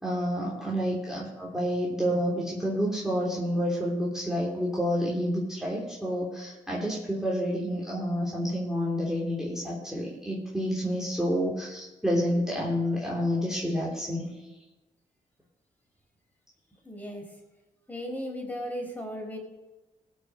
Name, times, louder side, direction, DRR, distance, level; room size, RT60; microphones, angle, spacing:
voice 1, 0.0-14.3, equal, 5° right, -5 dB, 3.4 m, -29 dB
voice 2, 16.8-17.2 17.9-19.4, equal, 10° left, 1 dB, 4.6 m, -36 dB
17.5 x 6.5 x 6.4 m, 1.1 s
cardioid pair, 70°, 14 cm